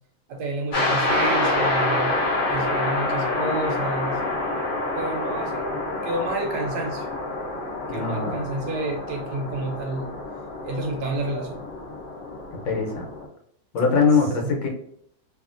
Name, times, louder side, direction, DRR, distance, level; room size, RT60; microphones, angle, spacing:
voice 1, 0.3-2.1 2.5-4.2 4.9-5.8 6.0-7.1 7.9-10.1 10.6-11.6 14.4-14.5, right 2 dB, 70° right, 2 dB, 1.1 m, -30 dB
sound 1, 0.7-13.2, left 2 dB, 45° left, 0.9 m, -27 dB
voice 2, 7.9-8.5 12.6-13.1 13.7-14.7, left 5 dB, 85° left, 1 dB, 1.5 m, -22 dB
2.8 x 2.7 x 2.4 m, 0.69 s
omnidirectional pair, 2.0 m